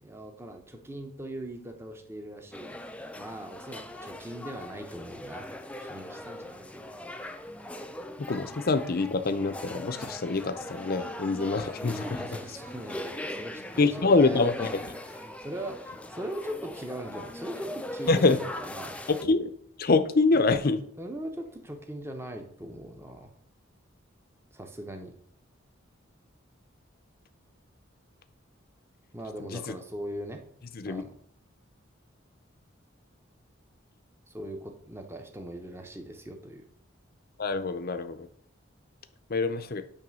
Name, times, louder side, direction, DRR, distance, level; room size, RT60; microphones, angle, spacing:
voice 1, 0.0-2.8 3.2-5.5 5.9-7.0 12.0-14.7 15.0-19.0 21.0-23.3 24.5-25.1 29.1-30.4 30.8-31.2 34.3-36.7, right 1 dB, 10° right, 4 dB, 0.8 m, -40 dB
sound 1, 2.5-19.2, left 1 dB, 5° left, 0.4 m, -40 dB
voice 2, 8.3-12.2 13.8-14.7 18.1-18.4 19.1-19.5 19.8-20.8 29.5-29.7 30.8-31.0 37.4-38.3 39.3-39.8, left 3 dB, 50° left, 9 dB, 0.6 m, -25 dB
9.0 x 3.3 x 6.3 m, 0.65 s
head